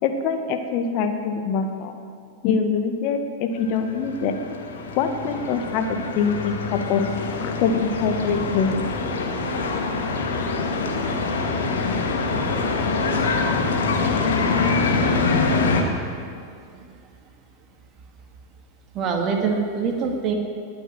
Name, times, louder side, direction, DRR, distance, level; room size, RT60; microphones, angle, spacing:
voice 1, 0.0-1.9 2.4-4.4 4.9-7.1 7.4-8.9, left 5 dB, 45° left, 6 dB, 1.7 m, -24 dB
sound 1, 3.7-15.8, left 4 dB, 65° left, 2.0 m, -24 dB
voice 2, 18.9-20.4, right 5 dB, 35° right, 2 dB, 2.4 m, -24 dB
19.5 x 8.0 x 9.0 m, 2.3 s
figure-of-eight pair, 90°, 0 cm